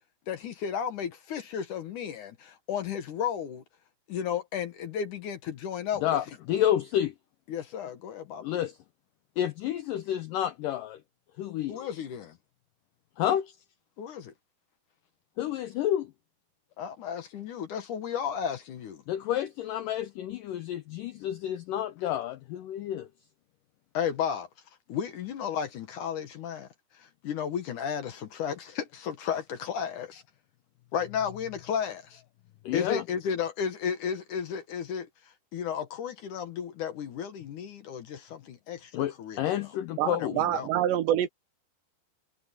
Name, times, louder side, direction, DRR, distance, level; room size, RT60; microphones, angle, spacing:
voice 1, 0.3-3.6 4.1-6.2 7.5-8.5 11.7-12.4 14.0-14.3 16.8-19.0 23.9-24.5 24.9-26.7 26.9-30.2 30.9-32.2 32.7-39.7 40.2-40.7, left 8 dB, 60° left, 2.3 m, -33 dB
voice 2, 6.0-7.1 8.4-8.8 9.4-11.0 11.4-11.9 13.2-13.5 15.4-16.1 19.1-23.1 32.7-33.0 38.9-40.4, left 11 dB, 85° left, 1.9 m, -30 dB
voice 3, 40.0-41.3, right 11 dB, 90° right, 3.6 m, -26 dB
omnidirectional pair, 4.9 m